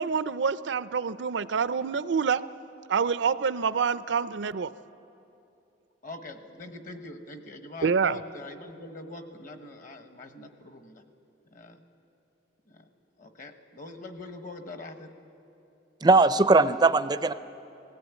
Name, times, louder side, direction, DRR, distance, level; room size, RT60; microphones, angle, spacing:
voice 1, 0.0-2.4 2.9-4.7 7.8-8.2, right 6 dB, 75° right, 15 dB, 0.5 m, -26 dB
voice 2, 6.0-11.0 11.5-11.8 12.7-12.9 13.2-15.1, left 2 dB, 45° left, 7 dB, 1.2 m, -43 dB
voice 3, 16.0-17.3, right 3 dB, 20° right, 13 dB, 0.4 m, -20 dB
19.5 x 16.0 x 8.2 m, 2.8 s
head